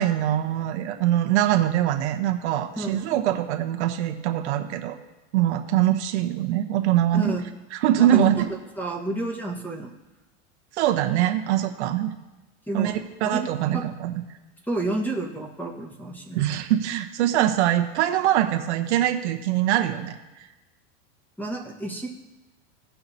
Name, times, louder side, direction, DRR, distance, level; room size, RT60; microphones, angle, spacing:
voice 1, 0.0-5.0 5.3-7.3 7.7-8.5 10.8-12.1 12.7-14.2 16.3-20.2, right 12 dB, 75° right, 4 dB, 1.0 m, -23 dB
voice 2, 2.8-3.2 7.1-7.4 8.0-8.5 8.8-9.9 12.7-13.0 13.3-13.4 13.7-13.8 14.7-16.4 21.4-22.1, right 1 dB, 5° left, 1 dB, 1.4 m, -30 dB
17.0 x 5.7 x 2.8 m, 1.1 s
supercardioid pair, 130°, 35 cm